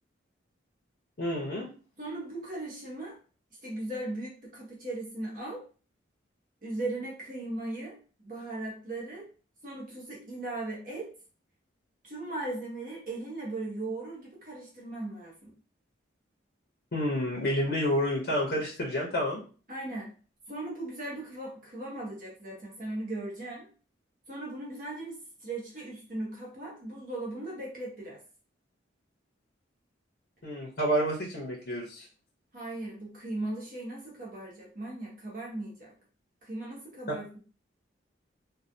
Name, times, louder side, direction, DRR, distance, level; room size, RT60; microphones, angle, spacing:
voice 1, 1.2-1.7 16.9-19.4 30.4-32.0, equal, 55° left, -3 dB, 0.7 m, -29 dB
voice 2, 2.0-3.2 3.6-5.6 6.6-8.0 8.2-9.3 9.6-11.1 12.0-15.5 19.7-20.1 20.5-23.7 24.3-28.2 32.5-35.9 36.4-37.4, right 2 dB, 45° right, -3 dB, 1.0 m, -38 dB
3.2 x 2.2 x 2.6 m, 0.38 s
head